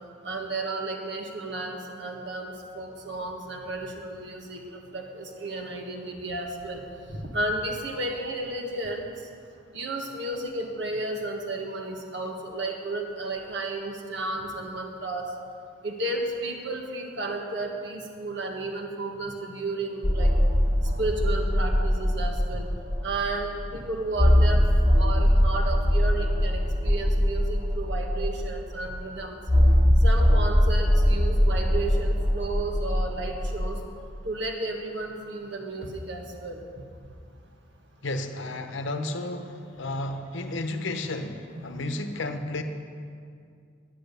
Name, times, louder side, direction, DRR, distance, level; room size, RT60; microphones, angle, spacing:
voice 1, 0.2-6.8 7.1-9.1 9.7-15.2 15.8-20.3 21.0-22.7 23.0-24.6 25.0-29.4 30.0-33.8 34.2-36.6, right 2 dB, 60° right, 2 dB, 1.5 m, -33 dB
sound 1, 20.0-23.3 23.6-23.7 24.1-28.7 29.5-33.8, equal, 20° right, 1.8 m, -22 dB
voice 2, 38.0-42.6, left 2 dB, 65° left, 7 dB, 0.9 m, -32 dB
11.0 x 10.0 x 6.8 m, 2.3 s
head